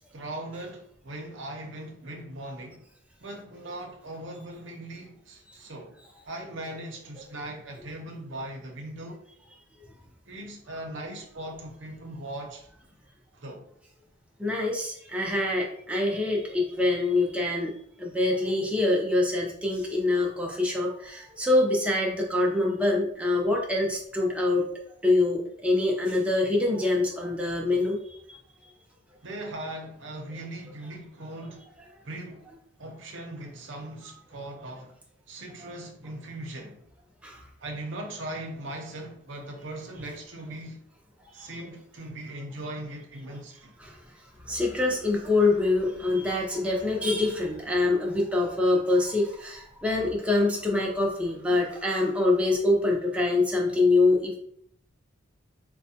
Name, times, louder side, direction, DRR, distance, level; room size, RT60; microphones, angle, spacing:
voice 1, 0.1-2.8 3.2-5.9 6.2-9.2 10.3-12.7 13.3-13.7 29.2-31.6 32.0-32.4 32.8-34.9 35.3-36.8 37.6-40.8 41.3-43.7, right 1 dB, 70° right, 0.7 m, -39 dB
voice 2, 14.4-17.7 18.0-24.7 25.0-28.4 37.2-37.4 41.4-41.5 43.8-44.0 44.5-54.4, left 2 dB, 5° right, 0.6 m, -25 dB
4.5 x 2.2 x 2.7 m
head